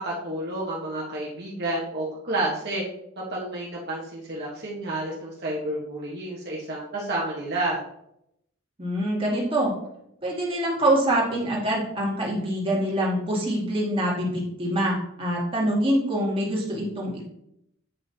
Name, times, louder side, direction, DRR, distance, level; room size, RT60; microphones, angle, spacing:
voice 1, 0.0-2.8 3.2-7.8, right 1 dB, 55° right, -5 dB, 1.3 m, -30 dB
voice 2, 8.8-9.7 10.2-17.2, right 1 dB, 30° right, -4 dB, 2.2 m, -25 dB
8.4 x 5.5 x 2.8 m, 0.77 s
head